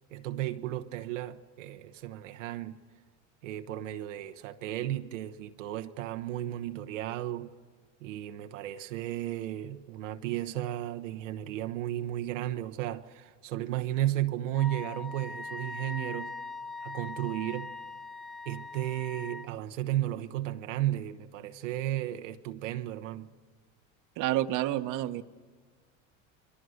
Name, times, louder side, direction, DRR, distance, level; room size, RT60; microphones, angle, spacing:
voice 1, 0.1-2.8 3.4-7.5 8.0-16.4 16.8-17.7 18.5-23.3, right 14 dB, 85° right, 1.1 m, -34 dB
Wind instrument woodwind instrument, 14.5-19.5, left 3 dB, ahead, 0.6 m, -41 dB
voice 2, 24.2-25.2, right 14 dB, 55° right, 1.1 m, -29 dB
29.5 x 22.5 x 6.5 m
supercardioid pair, 95°, 36 cm